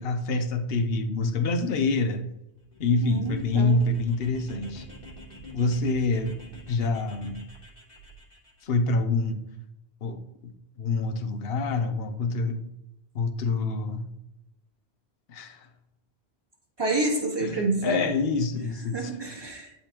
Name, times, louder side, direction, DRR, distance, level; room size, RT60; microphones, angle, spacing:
voice 1, 0.0-2.3 2.8-4.9 5.5-6.4 6.7-7.4 8.6-9.4 10.0-10.5 10.8-12.7 13.1-14.1 15.3-15.7 17.4-19.1, left 3 dB, 70° left, 1.0 m, -26 dB
sound 1, 2.6-8.7, equal, 40° left, 2.3 m, -46 dB
voice 2, 3.0-3.8 16.8-18.1 18.9-19.7, right 2 dB, 25° right, 1.6 m, -28 dB
11.5 x 4.1 x 3.0 m
omnidirectional pair, 1.1 m